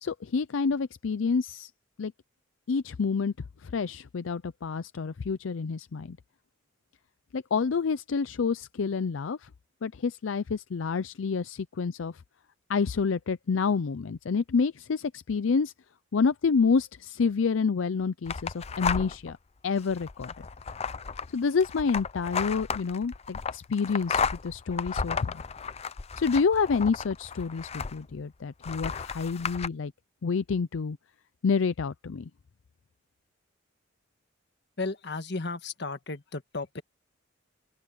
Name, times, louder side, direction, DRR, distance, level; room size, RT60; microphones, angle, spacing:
voice 1, 0.0-1.7 2.0-2.1 2.7-3.3 3.6-6.2 7.3-9.5 9.8-12.1 12.7-15.7 16.1-19.4 19.6-20.5 21.3-25.4 26.2-29.9 30.2-31.0 31.4-32.3, left 5 dB, 80° left, 0.5 m, -28 dB
sound 1, 18.3-19.3 19.8-28.2 28.6-29.7, left 5 dB, 30° left, 0.5 m, -33 dB
voice 2, 34.8-36.8, left 3 dB, 60° left, 1.5 m, -34 dB
open air
head